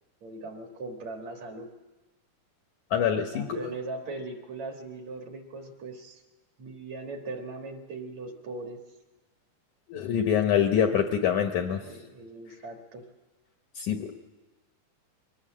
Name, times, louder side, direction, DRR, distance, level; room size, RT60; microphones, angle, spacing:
voice 1, 0.2-1.7 3.1-6.2 6.6-8.8 11.8-13.0, right 2 dB, 55° right, 3 dB, 2.6 m, -39 dB
voice 2, 2.9-3.6 9.9-11.8 13.8-14.3, left 8 dB, 70° left, 5 dB, 1.9 m, -25 dB
23.5 x 19.0 x 7.5 m, 1.2 s
omnidirectional pair, 4.5 m